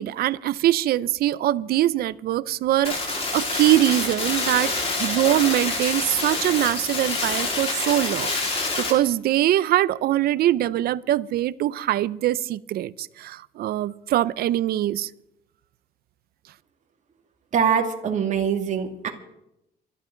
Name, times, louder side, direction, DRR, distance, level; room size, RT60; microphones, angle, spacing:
voice 1, 0.0-15.1, right 13 dB, 65° right, 0.6 m, -23 dB
sound 1, 2.8-8.9, left 3 dB, 35° left, 4.5 m, -27 dB
voice 2, 17.5-19.1, right 7 dB, 45° right, 2.6 m, -23 dB
25.0 x 12.0 x 3.9 m
cardioid pair, 110°, 17 cm